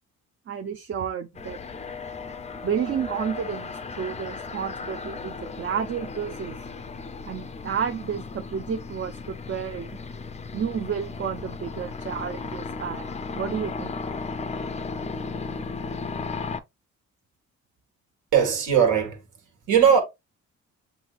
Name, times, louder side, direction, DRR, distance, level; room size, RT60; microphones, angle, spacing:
voice 1, 0.5-1.6 2.6-6.6 7.3-10.0 10.5-14.0, right 7 dB, 40° right, 0.5 m, -31 dB
sound 1, 1.4-16.6, left 4 dB, 25° left, 0.4 m, -35 dB
voice 2, 18.3-19.2 19.7-20.0, right 8 dB, 75° right, 1.6 m, -19 dB
7.7 x 2.6 x 2.4 m
cardioid pair, 90°, 30 cm